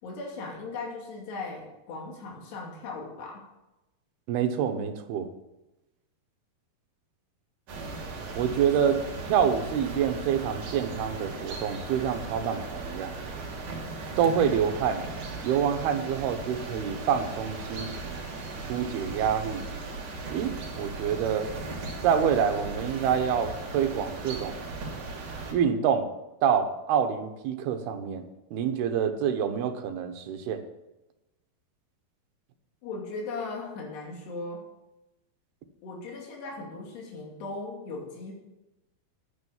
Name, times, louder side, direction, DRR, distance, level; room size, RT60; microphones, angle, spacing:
voice 1, 0.0-3.4 32.8-34.6 35.8-38.3, left 3 dB, 85° left, 0 dB, 4.7 m, -38 dB
voice 2, 4.3-5.3 8.4-9.0 9.3-13.1 14.2-15.0 15.4-18.2 18.7-19.6 20.3-21.5 22.0-24.6 25.5-26.1 26.4-28.2 28.5-30.6, right 8 dB, 80° right, 7 dB, 3.0 m, -27 dB
sound 1, 7.7-25.5, right 3 dB, 55° right, 3.9 m, -37 dB
10.5 x 9.5 x 7.2 m, 0.98 s
omnidirectional pair, 4.6 m